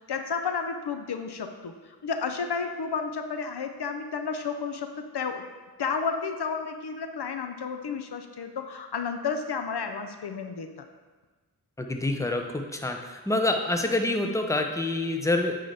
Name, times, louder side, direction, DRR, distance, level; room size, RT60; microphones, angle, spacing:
voice 1, 0.0-5.4 5.8-10.9, left 5 dB, 90° left, 7 dB, 0.6 m, -32 dB
voice 2, 11.8-15.5, left 2 dB, 10° left, 4 dB, 0.6 m, -27 dB
9.3 x 3.9 x 3.4 m, 1.3 s
wide cardioid pair, 40°, 38 cm